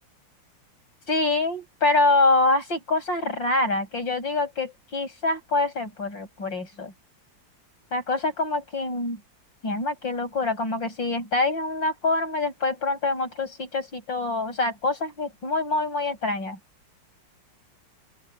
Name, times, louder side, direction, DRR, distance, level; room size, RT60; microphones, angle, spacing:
voice 1, 1.1-6.9 7.9-9.2 9.6-16.6, left 2 dB, 80° left, 8.9 m, -25 dB
open air
omnidirectional pair, 2.0 m